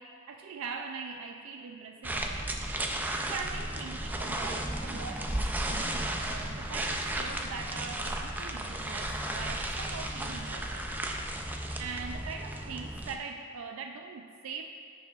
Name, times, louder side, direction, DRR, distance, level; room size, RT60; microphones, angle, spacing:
voice 1, 0.0-2.6 3.3-10.9 11.8-14.7, right 5 dB, 90° right, 4 dB, 0.4 m, -42 dB
sound 1, 2.0-13.2, right 1 dB, 10° right, 0.4 m, -34 dB
13.5 x 4.6 x 2.4 m, 2.3 s
head